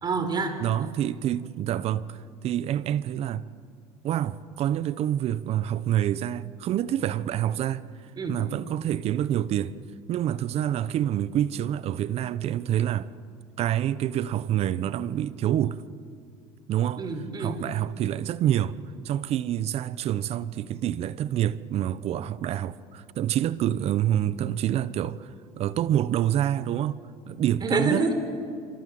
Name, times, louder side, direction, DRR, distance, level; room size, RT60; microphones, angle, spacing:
voice 1, 0.0-0.6 8.2-8.4 17.0-17.6 27.6-28.1, right 4 dB, 35° right, 4.4 m, -26 dB
voice 2, 0.6-3.5 4.0-7.8 8.3-9.7 10.1-13.1 13.6-15.8 16.7-17.1 17.4-18.7 19.0-25.3 25.6-27.0 27.3-28.0, right 11 dB, 50° right, 1.0 m, -27 dB
28.0 x 26.5 x 7.8 m
supercardioid pair, 105°, 13 cm